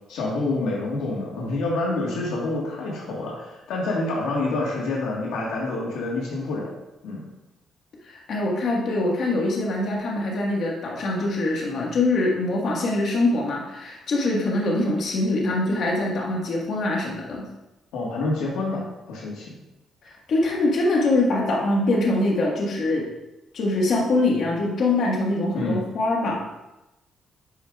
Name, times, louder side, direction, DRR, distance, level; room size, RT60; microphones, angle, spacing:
voice 1, 0.1-6.7 7.0-7.2 17.9-19.6 25.5-25.8, left 2 dB, 90° left, -3 dB, 1.4 m, -27 dB
voice 2, 8.1-17.5 20.0-23.1 23.5-26.4, left 2 dB, 60° left, -2 dB, 1.4 m, -23 dB
9.8 x 5.0 x 2.3 m, 0.99 s
cardioid pair, 90°, 0 cm